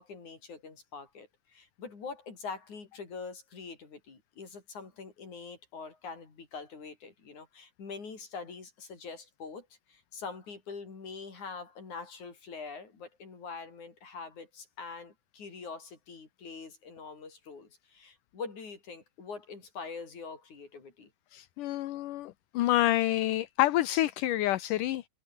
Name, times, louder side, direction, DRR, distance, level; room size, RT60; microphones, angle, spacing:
voice 1, 0.0-21.1, left 4 dB, 55° left, 5.8 m, -44 dB
voice 2, 21.3-25.1, left 15 dB, 70° left, 2.4 m, -28 dB
omnidirectional pair, 4.1 m